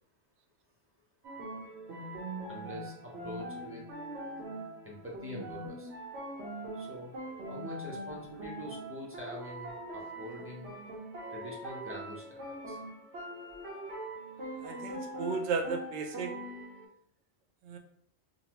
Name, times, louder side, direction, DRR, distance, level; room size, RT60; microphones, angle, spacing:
sound 1, 1.2-16.9, right 1 dB, 75° right, 1.0 m, -42 dB
voice 1, 2.5-3.8 4.8-5.9 6.7-7.1 7.4-10.7 11.3-12.8, equal, 15° right, -4 dB, 0.5 m, -44 dB
voice 2, 14.6-16.3 17.7-17.8, right 5 dB, 60° right, 4 dB, 0.5 m, -34 dB
3.7 x 2.0 x 2.9 m, 0.64 s
omnidirectional pair, 1.2 m